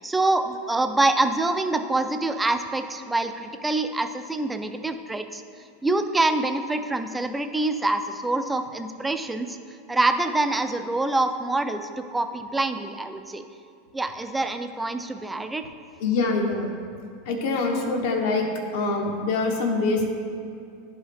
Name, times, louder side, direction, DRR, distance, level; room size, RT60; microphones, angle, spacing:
voice 1, 0.0-5.4 5.8-9.6 9.9-13.4 13.9-15.7, right 2 dB, 5° right, 8 dB, 0.3 m, -25 dB
voice 2, 16.0-16.7 17.2-18.4 18.7-20.1, left 3 dB, 60° left, 1 dB, 0.9 m, -24 dB
10.5 x 5.4 x 3.3 m, 2.5 s
supercardioid pair, 160°, 0 cm